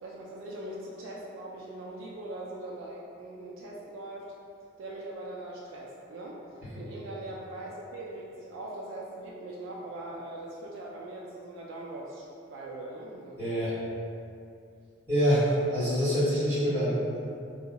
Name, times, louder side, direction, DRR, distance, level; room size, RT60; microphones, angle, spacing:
voice 1, 0.0-4.3 4.8-6.4 6.8-13.4, right 1 dB, 90° right, -3 dB, 0.3 m, -41 dB
voice 2, 13.4-13.7 15.1-17.2, equal, 10° right, -16 dB, 1.4 m, -26 dB
2.8 x 2.7 x 2.2 m, 2.5 s
head